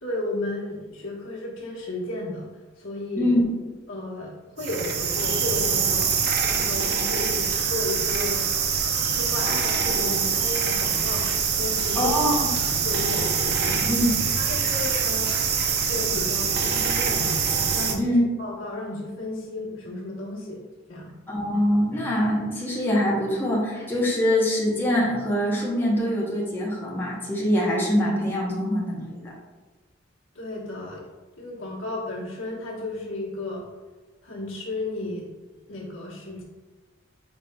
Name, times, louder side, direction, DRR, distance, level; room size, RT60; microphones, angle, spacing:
voice 1, 0.0-2.5 2.8-3.3 3.9-6.1 6.4-8.5 9.1-11.3 11.6-12.2 12.6-13.3 13.6-14.0 14.4-15.3 15.8-17.5 17.7-20.6 20.9-21.1 30.3-31.1 31.4-33.7 34.2-35.3 35.6-36.4, left 2 dB, 90° left, -4 dB, 1.2 m, -33 dB
sound 1, 4.6-17.9, right 6 dB, 55° right, 0.5 m, -24 dB
voice 2, 12.0-12.5 13.9-14.1 18.0-18.2 21.3-29.3, equal, 10° left, -5 dB, 0.8 m, -24 dB
5.3 x 3.7 x 2.2 m, 1.3 s
head